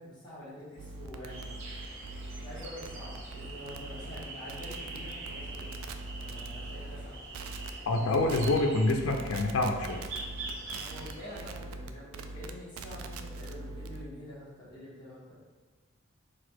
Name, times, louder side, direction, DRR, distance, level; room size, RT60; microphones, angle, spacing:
voice 1, 0.0-1.6 2.3-5.8 6.1-7.2 7.9-8.6 10.8-15.4, left 1 dB, 20° left, -9 dB, 1.4 m, -46 dB
sound 1, 0.8-7.1 7.3-7.7 8.1-8.6 8.9-14.0, right 3 dB, 80° right, 0.3 m, -42 dB
sound 2, 1.3-11.5, right 2 dB, 60° right, 0.8 m, -44 dB
voice 2, 7.9-10.0, left 2 dB, 85° left, 3 dB, 0.5 m, -27 dB
4.0 x 2.5 x 4.5 m, 1.4 s
head